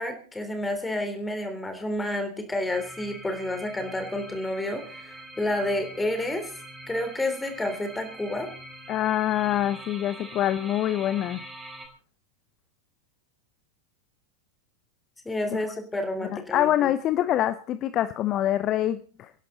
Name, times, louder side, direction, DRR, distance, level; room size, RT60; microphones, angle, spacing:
voice 1, 0.0-6.5 6.9-8.5 15.3-16.9, left 1 dB, 10° left, 6 dB, 3.6 m, -30 dB
sound 1, 2.7-11.9, right 1 dB, 10° right, 3.8 m, -44 dB
voice 2, 8.9-11.4 16.3-19.3, left 12 dB, 35° left, 13 dB, 0.8 m, -25 dB
25.0 x 11.0 x 4.1 m, 0.40 s
figure-of-eight pair, 90°, 0 cm